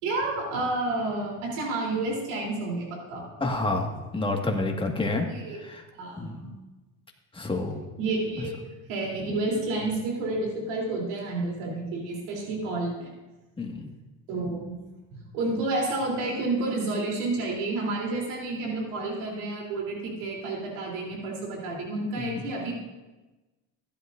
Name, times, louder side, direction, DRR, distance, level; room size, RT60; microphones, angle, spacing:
voice 1, 0.0-3.2 5.0-5.6 5.9-6.5 8.0-8.6 8.9-13.1 14.3-14.7 15.1-22.7, right 2 dB, 90° right, -2 dB, 3.3 m, -30 dB
voice 2, 3.4-5.3 5.5-5.8 6.2-6.4 7.3-7.8 8.4-8.5 13.6-13.9 22.2-22.4, left 2 dB, 15° left, 1 dB, 1.7 m, -29 dB
15.5 x 11.5 x 2.5 m, 1.1 s
supercardioid pair, 110°, 38 cm